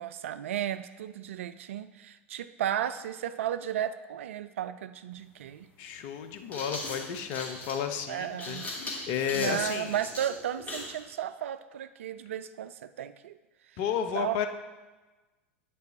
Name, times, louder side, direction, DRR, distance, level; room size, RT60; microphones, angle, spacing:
voice 1, 0.0-5.7 8.1-8.7 9.3-13.4 14.1-14.5, right 10 dB, 65° right, 13 dB, 0.4 m, -34 dB
sound 1, 5.1-5.2 6.2-11.0, left 2 dB, 25° left, 1.9 m, -39 dB
voice 2, 5.8-9.9 13.8-14.5, left 8 dB, 50° left, 7 dB, 0.6 m, -32 dB
8.9 x 5.4 x 2.7 m, 1.2 s
figure-of-eight pair, 85°, 7 cm